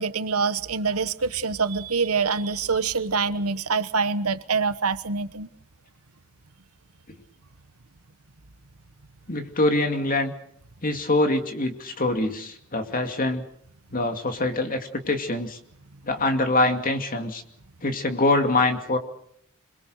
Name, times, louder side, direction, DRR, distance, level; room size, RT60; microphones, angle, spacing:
voice 1, 0.0-5.5, right 4 dB, 85° right, 1.2 m, -25 dB
voice 2, 9.3-10.3 10.8-13.4 13.9-15.6 16.0-17.4 17.8-19.0, left 2 dB, 40° left, 2.4 m, -24 dB
26.5 x 22.0 x 6.5 m
head